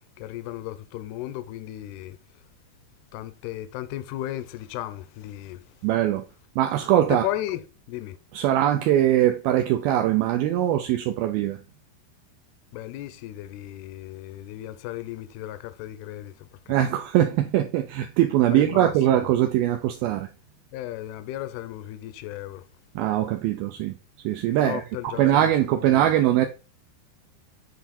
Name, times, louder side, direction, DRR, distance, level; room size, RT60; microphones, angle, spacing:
voice 1, 0.2-2.2 3.1-5.6 7.1-8.2 12.7-16.5 18.5-19.3 20.7-22.6 24.5-26.0, left 14 dB, 80° left, 2.5 m, -35 dB
voice 2, 5.8-6.2 6.6-7.3 8.3-11.6 16.7-20.3 23.0-24.0 24.2-26.5, right 12 dB, 85° right, 2.2 m, -22 dB
8.1 x 4.1 x 4.2 m
omnidirectional pair, 4.9 m